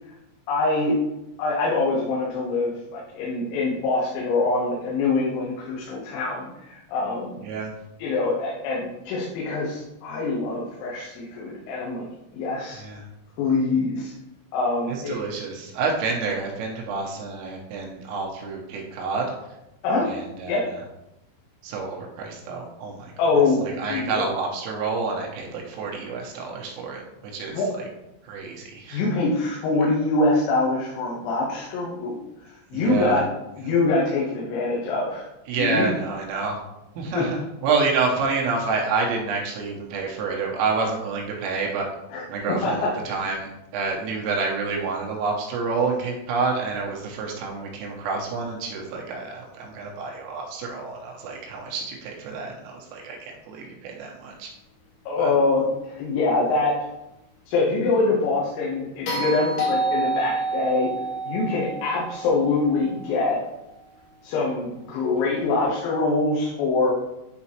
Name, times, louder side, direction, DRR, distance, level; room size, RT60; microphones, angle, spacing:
voice 1, 0.5-1.0 1.4-7.4 8.0-12.1 12.3-12.8 13.4-14.1 14.5-15.2 19.8-20.1 20.5-20.6 23.2-23.6 23.9-24.2 27.5-27.7 28.9-32.2 32.7-33.2 33.6-35.2 35.6-35.9 37.2-37.3 42.1-42.2 42.6-42.9 55.1-56.7 57.5-60.9 61.2-63.4 64.2-66.9, left 3 dB, 85° left, -5 dB, 3.7 m, -24 dB
voice 2, 7.4-7.7 12.7-13.0 14.9-19.3 20.0-20.6 21.6-23.1 23.6-27.9 28.2-29.0 32.7-33.2 35.5-36.6 36.9-41.9 42.3-54.5 55.2-55.3, right 4 dB, 80° right, -1 dB, 3.4 m, -28 dB
sound 1, 59.1-63.3 65.6-65.7, right 2 dB, 65° left, 3.9 m, -28 dB
9.6 x 4.0 x 2.8 m, 0.92 s
omnidirectional pair, 5.9 m